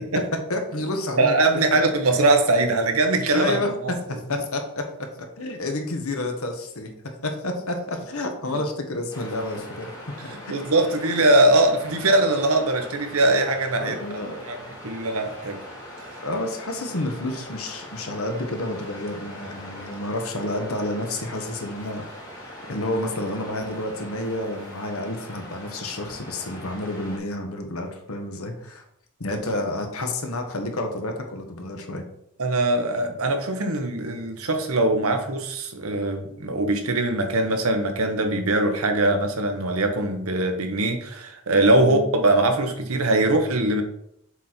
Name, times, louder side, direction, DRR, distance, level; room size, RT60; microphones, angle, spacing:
voice 1, 0.5-1.4 1.7-1.8 3.3-5.1 5.4-9.9 10.2-10.5 13.8-14.4 16.2-22.0 22.4-28.8 29.2-32.0 41.8-42.0, left 1 dB, 85° left, 4 dB, 1.2 m, -30 dB
voice 2, 1.2-3.7 10.5-13.9 14.4-14.6 14.8-15.6 32.4-43.8, right 2 dB, 85° right, 6 dB, 1.0 m, -21 dB
Waves surf, 9.1-27.2, left 1 dB, 15° left, 2.0 m, -41 dB
7.1 x 4.1 x 4.4 m, 0.75 s
head